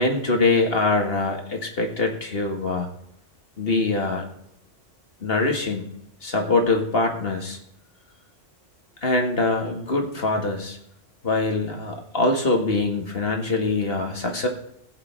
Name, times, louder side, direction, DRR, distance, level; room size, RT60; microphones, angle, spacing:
voice 1, 0.0-2.9 3.6-4.2 5.2-5.9 6.2-7.6 9.0-10.8 11.2-14.5, left 3 dB, 50° left, 3 dB, 2.1 m, -23 dB
21.0 x 7.3 x 3.5 m, 0.78 s
omnidirectional pair, 1.2 m